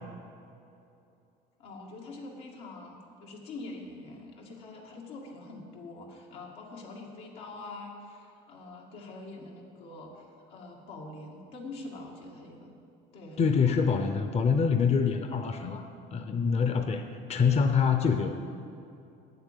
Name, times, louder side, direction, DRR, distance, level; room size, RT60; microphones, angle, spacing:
voice 1, 1.6-12.7 13.1-13.8, left 2 dB, 85° left, -2 dB, 2.1 m, -44 dB
voice 2, 13.4-17.0 17.3-18.4, left 6 dB, 35° left, 6 dB, 0.7 m, -25 dB
8.9 x 7.9 x 7.4 m, 2.7 s
supercardioid pair, 85°, 19 cm